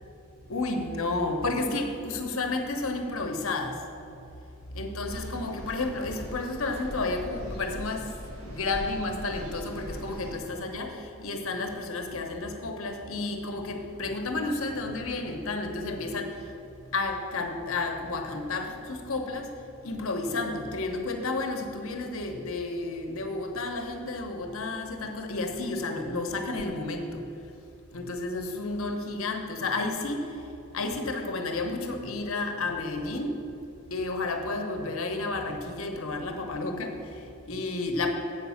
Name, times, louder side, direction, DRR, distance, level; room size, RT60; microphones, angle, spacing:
voice 1, 0.5-3.8 4.7-8.2 8.4-16.5 16.9-19.5 19.8-27.2 27.9-30.4 30.7-33.4 33.9-38.1, left 2 dB, 65° left, 4 dB, 1.0 m, -31 dB
sound 1, 5.0-10.4, equal, 75° right, 1.5 m, -41 dB
7.8 x 5.3 x 7.2 m, 2.7 s
head